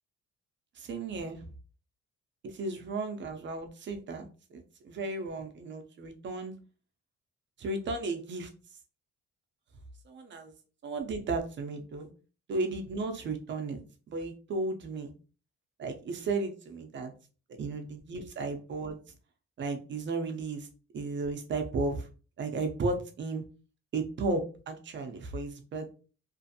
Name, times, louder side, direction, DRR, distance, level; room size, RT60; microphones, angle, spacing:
voice 1, 0.8-1.4 2.4-4.3 4.5-6.5 7.6-8.5 10.1-10.5 10.8-12.1 12.5-13.8 14.1-15.1 15.8-17.1 17.6-19.0 19.6-20.7 20.9-22.1 22.4-23.4 23.9-26.0, right 3 dB, 40° right, 6 dB, 0.5 m, -34 dB
2.5 x 2.4 x 2.6 m, 0.36 s
cardioid pair, 160°, 29 cm